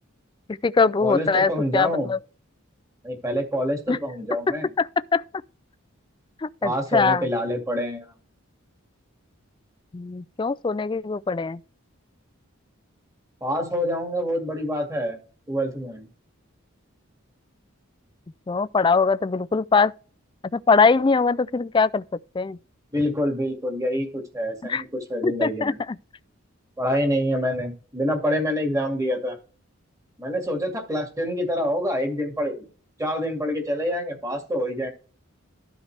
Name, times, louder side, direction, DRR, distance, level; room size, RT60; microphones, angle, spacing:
voice 1, 0.5-2.2 3.9-4.0 4.8-5.2 6.4-7.3 9.9-11.6 18.5-19.9 20.5-22.0 22.3-22.6 24.6-24.8 25.2-25.7, left 4 dB, 20° left, 0.3 m, -22 dB
voice 2, 1.0-2.1 3.0-4.7 6.6-8.1 13.4-15.2 15.5-16.1 22.9-25.8 26.8-29.4 30.2-32.7 33.0-34.9, equal, 15° right, 2.1 m, -26 dB
12.5 x 5.7 x 3.3 m
head